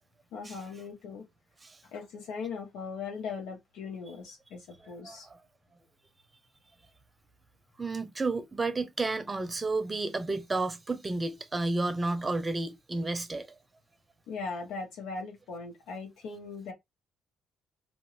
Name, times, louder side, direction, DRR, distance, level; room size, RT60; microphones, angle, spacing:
voice 1, 0.3-1.2 1.8-5.3 14.3-16.7, left 5 dB, 75° left, 1.5 m, -39 dB
voice 2, 4.8-5.4 7.8-13.5, right 3 dB, 25° right, 0.7 m, -31 dB
2.8 x 2.6 x 3.2 m
hypercardioid pair, 55°, 0 cm